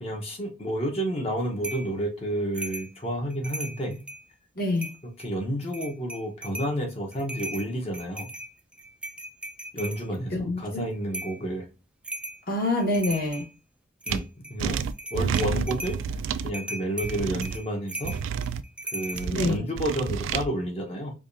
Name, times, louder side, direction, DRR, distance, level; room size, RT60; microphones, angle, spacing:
voice 1, 0.0-4.0 5.2-8.3 9.7-11.7 14.1-14.8 15.1-16.2 16.4-18.1 18.9-21.1, right 1 dB, 35° left, 1 dB, 0.9 m, -30 dB
sound 1, 1.6-1.9 2.5-2.9 3.3-4.2 4.8-5.3 5.7-6.7 7.1-10.0 11.1-11.4 12.0-12.4 12.8-13.5 14.0-14.5 14.9-16.0 16.5-19.3, right 1 dB, 5° right, 0.3 m, -37 dB
voice 2, 4.6-4.9 10.3-10.8 12.5-13.4 19.3-19.6, left 2 dB, 50° left, 0 dB, 1.4 m, -26 dB
sound 2, 14.1-14.2 14.6-16.5 17.0-17.6 18.0-18.6 19.1-20.4, right 6 dB, 90° right, 0.3 m, -29 dB
4.8 x 2.4 x 2.6 m, 0.32 s
head